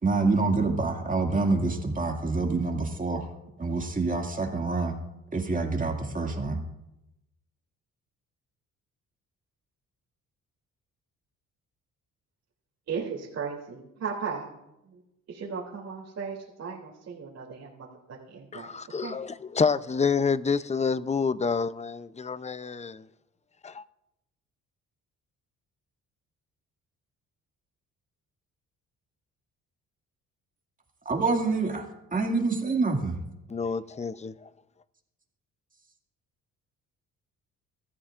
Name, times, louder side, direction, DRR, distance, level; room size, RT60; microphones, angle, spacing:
voice 1, 0.0-3.3 3.6-5.0 5.3-6.6 31.1-33.2, right 3 dB, 25° right, 2.2 m, -27 dB
voice 2, 12.9-14.6 14.9-15.0 15.3-18.7 19.0-19.2, right 6 dB, 60° right, 3.0 m, -36 dB
voice 3, 18.5-23.0 23.6-23.8 33.5-34.5, left 5 dB, 20° left, 0.6 m, -28 dB
24.0 x 13.5 x 2.5 m
cardioid pair, 90°, 30 cm